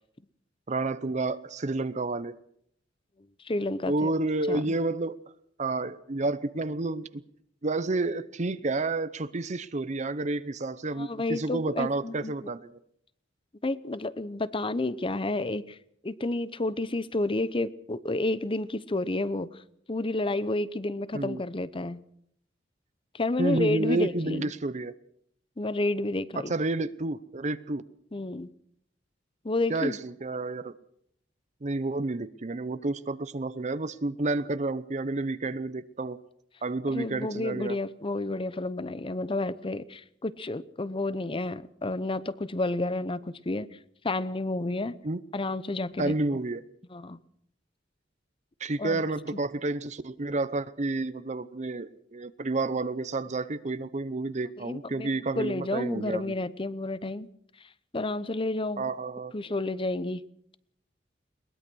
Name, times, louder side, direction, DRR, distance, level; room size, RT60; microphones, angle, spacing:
voice 1, 0.7-2.3 3.9-5.2 5.6-7.2 7.6-12.7 21.1-21.4 23.4-24.9 26.5-27.8 29.7-30.7 31.6-36.2 36.6-37.8 45.0-45.2 46.0-46.6 48.6-56.4 58.8-59.3, right 2 dB, 40° right, 14 dB, 0.8 m, -30 dB
voice 2, 3.4-4.1 4.5-4.6 11.0-12.3 13.6-15.8 16.0-19.6 19.9-22.0 23.1-24.5 25.6-26.5 28.1-28.5 29.4-30.0 36.9-43.7 44.0-45.0 45.3-46.4 46.9-47.2 48.8-49.0 54.6-57.3 57.9-58.9 59.3-60.2, left 2 dB, 30° left, 17 dB, 0.8 m, -30 dB
22.0 x 20.0 x 6.2 m, 0.68 s
head